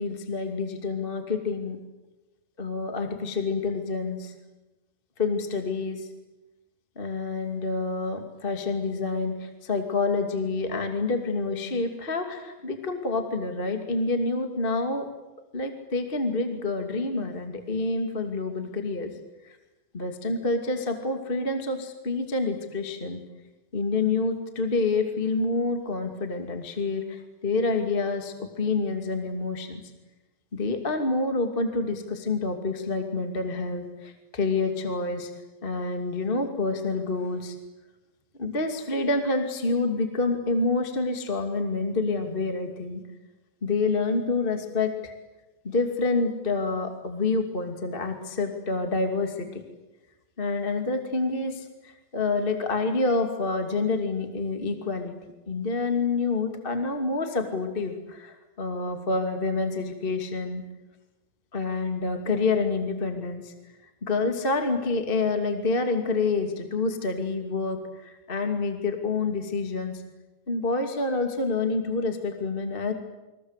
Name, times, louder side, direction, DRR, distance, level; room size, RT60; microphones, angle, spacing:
voice 1, 0.0-1.8 2.6-4.3 5.2-6.1 7.0-15.1 15.5-19.1 19.9-23.2 23.7-29.8 30.5-35.3 35.6-37.5 38.4-43.0 43.6-45.1 45.6-49.6 50.4-55.1 55.5-60.6 61.5-63.5 64.0-70.0 70.5-72.9, left 3 dB, 15° left, 5 dB, 2.2 m, -28 dB
29.0 x 24.5 x 8.3 m, 1.1 s
omnidirectional pair, 4.1 m